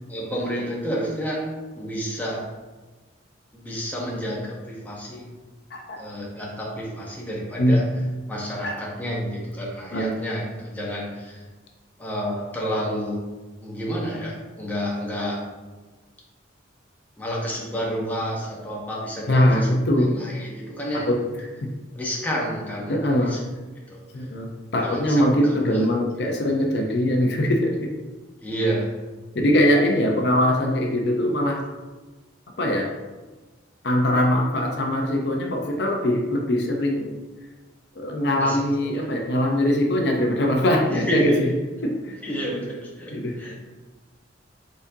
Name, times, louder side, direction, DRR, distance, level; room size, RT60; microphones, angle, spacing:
voice 1, 0.1-2.5 3.5-5.3 6.0-7.9 8.3-11.4 12.0-13.3 13.6-15.4 17.2-19.7 20.0-21.1 21.9-23.4 23.9-24.3 24.8-25.8 28.4-29.0 38.4-39.1 40.9-41.5 42.2-43.6, equal, 10° left, -4 dB, 0.8 m, -30 dB
voice 2, 5.7-6.0 7.6-7.8 8.6-8.8 9.9-10.1 19.3-20.2 21.1-21.7 22.9-23.4 24.1-27.9 29.3-31.6 32.6-32.9 33.8-37.2 38.0-41.5 41.8-42.1 43.1-43.4, left 1 dB, 55° left, 1 dB, 0.5 m, -22 dB
4.7 x 3.9 x 2.7 m, 1.3 s
head